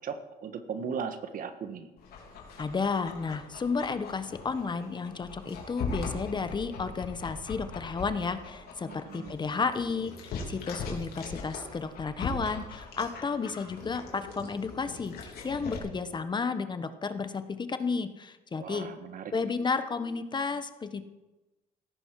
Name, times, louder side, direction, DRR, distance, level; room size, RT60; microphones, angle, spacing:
voice 1, 0.0-1.9 8.9-9.4 18.6-19.5, right 6 dB, 55° right, 9 dB, 1.6 m, -38 dB
Dog, 2.0-15.8, left 4 dB, 65° left, 3.7 m, -41 dB
voice 2, 2.6-18.9 19.3-21.0, left 4 dB, 25° left, 10 dB, 1.0 m, -32 dB
17.0 x 14.0 x 4.7 m, 1.1 s
cardioid pair, 110°, 17 cm